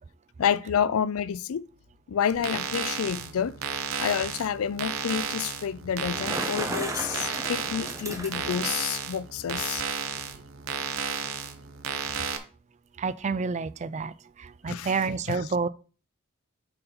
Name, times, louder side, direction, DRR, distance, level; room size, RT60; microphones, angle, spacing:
voice 1, 0.4-1.7 2.1-3.6 4.0-9.8 14.7-15.0 15.3-15.5, left 8 dB, 75° left, 0.4 m, -29 dB
sound 1, 2.3-12.4, right 6 dB, 65° right, 0.9 m, -33 dB
Bicycle, 6.0-8.8, right 1 dB, 15° right, 0.9 m, -35 dB
voice 2, 13.0-14.1 14.6-15.7, right 4 dB, 30° right, 0.3 m, -28 dB
8.9 x 4.3 x 3.9 m
head